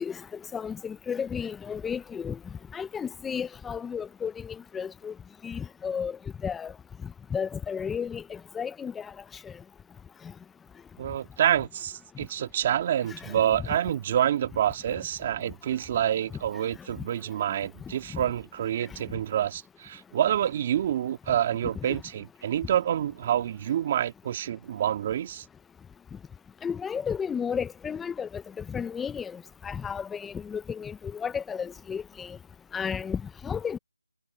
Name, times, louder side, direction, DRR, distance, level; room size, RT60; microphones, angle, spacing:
voice 1, 0.0-2.4 2.7-5.1 5.4-6.2 6.4-6.7 7.3-9.1 9.4-9.5 13.1-13.3 18.1-18.2 21.8-22.0 26.6-32.4 32.7-33.8, left 7 dB, 5° left, 0.5 m, -33 dB
voice 2, 11.0-25.5, right 10 dB, 25° right, 2.0 m, -27 dB
figure-of-eight pair, 165°, 0 cm